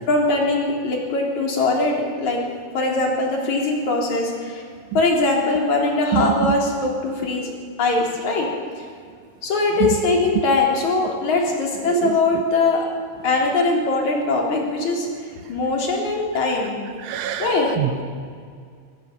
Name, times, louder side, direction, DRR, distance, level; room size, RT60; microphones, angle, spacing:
voice 1, 0.1-2.4 2.7-4.6 4.9-7.5 7.8-8.5 9.4-12.9 13.2-16.8 17.4-17.7, left 3 dB, 40° left, -1 dB, 4.5 m, -21 dB
voice 2, 11.9-12.2 17.0-18.0, right 12 dB, 80° right, 9 dB, 3.4 m, -25 dB
23.5 x 18.0 x 6.8 m, 2.1 s
omnidirectional pair, 5.8 m